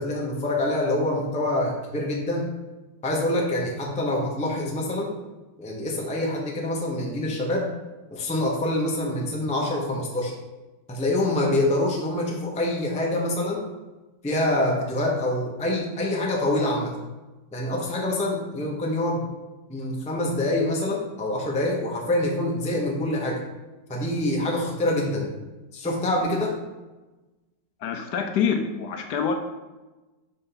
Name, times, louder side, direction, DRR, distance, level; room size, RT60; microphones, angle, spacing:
voice 1, 0.0-2.4 3.0-5.1 5.6-7.7 8.1-10.3 10.9-13.6 14.2-16.9 17.5-19.2 19.7-23.4 23.9-25.3 25.7-26.6, left 1 dB, 10° left, -2 dB, 0.4 m, -25 dB
voice 2, 27.8-29.3, left 6 dB, 75° left, 5 dB, 1.1 m, -26 dB
5.3 x 3.3 x 5.6 m, 1.1 s
omnidirectional pair, 2.0 m